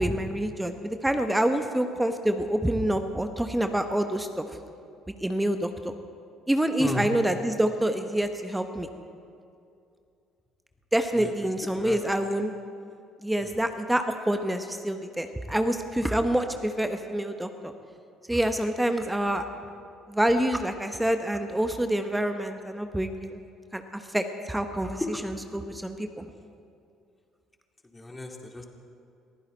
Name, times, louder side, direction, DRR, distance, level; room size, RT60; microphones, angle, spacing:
voice 1, 0.0-4.4 5.2-5.9 6.5-8.9 10.9-12.5 13.2-17.7 18.3-19.4 20.1-23.4 23.7-26.3, right 1 dB, 10° right, 7 dB, 1.1 m, -27 dB
voice 2, 27.9-28.7, left 2 dB, 20° left, 2 dB, 2.4 m, -34 dB
22.5 x 15.0 x 4.2 m, 2.5 s
hypercardioid pair, 55°, 0 cm